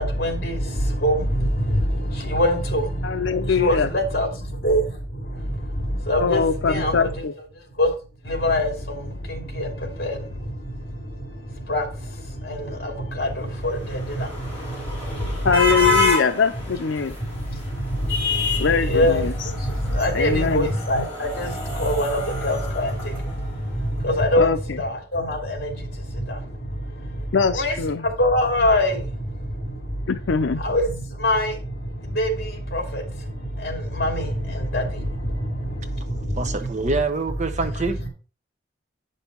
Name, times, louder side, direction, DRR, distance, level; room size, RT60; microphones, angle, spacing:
voice 1, 0.0-7.1 7.8-7.9 8.2-15.6 17.2-36.7 38.0-38.1, left 1 dB, 55° left, 2.8 m, -25 dB
voice 2, 3.0-3.9 6.2-7.3 15.4-17.2 18.6-19.3 20.1-20.7 24.4-24.8 27.3-28.1 30.1-30.6, left 5 dB, 85° left, 0.6 m, -22 dB
sound 1, 13.4-23.7, left 3 dB, 10° left, 4.6 m, -29 dB
voice 3, 36.4-38.0, right 3 dB, 40° right, 0.9 m, -25 dB
9.0 x 5.5 x 4.5 m
head